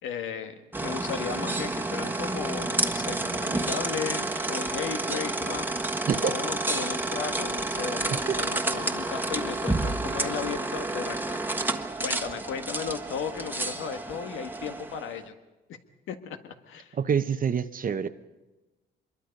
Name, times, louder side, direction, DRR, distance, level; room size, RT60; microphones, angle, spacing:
voice 1, 0.0-5.7 6.2-11.4 12.0-15.3 15.7-15.8 16.1-17.0, left 7 dB, 85° left, 7 dB, 1.6 m, -35 dB
sound 1, 0.7-15.1, right 2 dB, 10° right, 1.4 m, -30 dB
voice 2, 16.9-18.1, right 7 dB, 45° right, 10 dB, 0.9 m, -26 dB
25.0 x 22.5 x 5.3 m, 1.1 s
cardioid pair, 90°, 20 cm